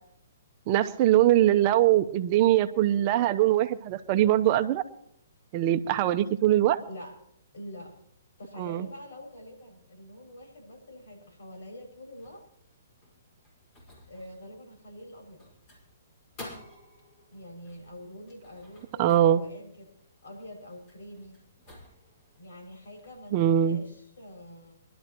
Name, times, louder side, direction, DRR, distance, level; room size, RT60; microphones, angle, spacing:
voice 1, 0.7-4.8 5.5-6.8 8.6-8.9 19.0-19.4 23.3-23.8, right 12 dB, 35° right, 9 dB, 0.9 m, -22 dB
voice 2, 6.8-7.2 7.5-8.0 8.4-12.4 14.1-15.4 17.3-19.9 20.2-21.4 22.4-24.7, left 1 dB, 75° left, 2 dB, 6.3 m, -45 dB
sound 1, 12.1-23.4, left 1 dB, 30° left, 5.0 m, -53 dB
24.0 x 12.0 x 3.0 m, 0.67 s
hypercardioid pair, 145°, 0 cm